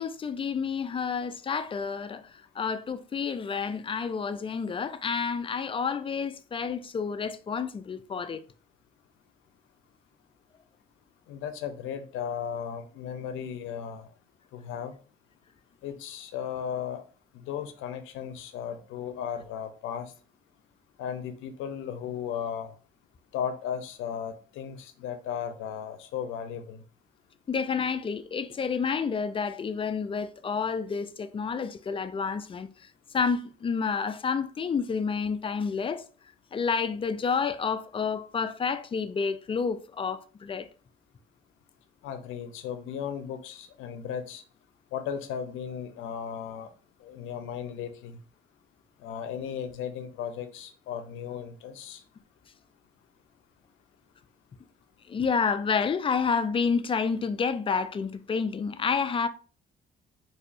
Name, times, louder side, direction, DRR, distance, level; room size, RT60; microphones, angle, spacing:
voice 1, 0.0-8.4 27.5-36.0 36.5-40.7 55.1-59.3, left 5 dB, 25° left, 0.3 m, -29 dB
voice 2, 11.3-14.1 14.5-14.9 15.8-17.0 17.3-20.1 21.0-22.7 23.3-26.8 42.0-44.4 44.9-46.7 47.0-48.2 49.0-52.0, left 8 dB, 90° left, 0.5 m, -36 dB
3.9 x 2.7 x 2.5 m
cardioid pair, 90°, 20 cm